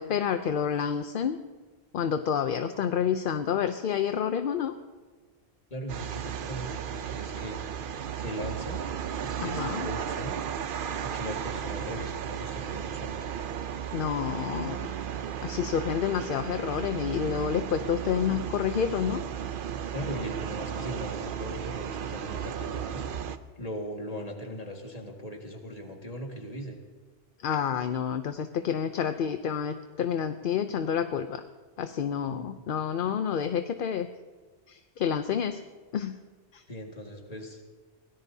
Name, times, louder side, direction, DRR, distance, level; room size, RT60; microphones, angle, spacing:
voice 1, 0.0-1.4 1.9-4.7 9.4-9.9 13.9-14.9 15.4-19.2 27.4-31.4 31.8-34.1 34.7-35.6 35.9-36.2 36.5-36.6, left 8 dB, 55° left, 8 dB, 0.7 m, -29 dB
voice 2, 5.7-7.6 8.2-8.8 9.2-10.4 11.0-13.2 19.9-23.0 23.6-26.8 32.3-32.5 33.0-33.1 36.7-37.6, equal, 35° left, 1 dB, 2.0 m, -39 dB
sound 1, 5.9-23.4, right 8 dB, 55° right, 0.7 m, -35 dB
23.5 x 17.5 x 2.7 m, 1.3 s
omnidirectional pair, 1.1 m